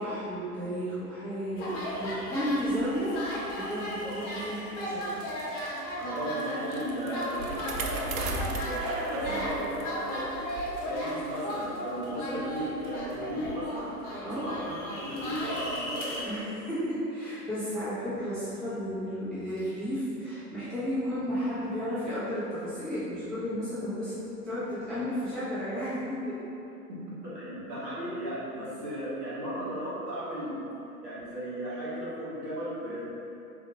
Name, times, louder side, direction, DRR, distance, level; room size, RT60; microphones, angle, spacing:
voice 1, 0.0-5.3 9.2-9.5 14.2-14.4 16.3-24.2 24.4-26.2 28.5-28.7 32.8-33.0, equal, ahead, -16 dB, 0.3 m, -33 dB
sound 1, 1.6-16.2, equal, 35° left, 0.8 m, -35 dB
voice 2, 6.0-10.3 10.8-13.9 14.2-16.4 26.9-30.6 31.0-33.0, equal, 85° right, -10 dB, 1.2 m, -35 dB
Bicycle, 6.2-10.1 10.5-10.6 11.4-11.5, right 4 dB, 60° right, 0.5 m, -39 dB
3.9 x 2.1 x 2.7 m, 2.8 s
figure-of-eight pair, 90°, 46 cm